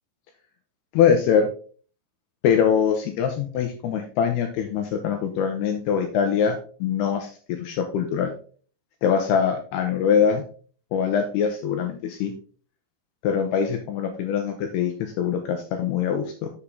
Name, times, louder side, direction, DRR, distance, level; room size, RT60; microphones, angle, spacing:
voice 1, 0.9-1.5 2.4-8.3 9.0-10.4 10.9-12.3 13.2-16.5, left 7 dB, 85° left, 5 dB, 2.4 m, -23 dB
7.0 x 6.9 x 3.6 m, 0.42 s
omnidirectional pair, 5.3 m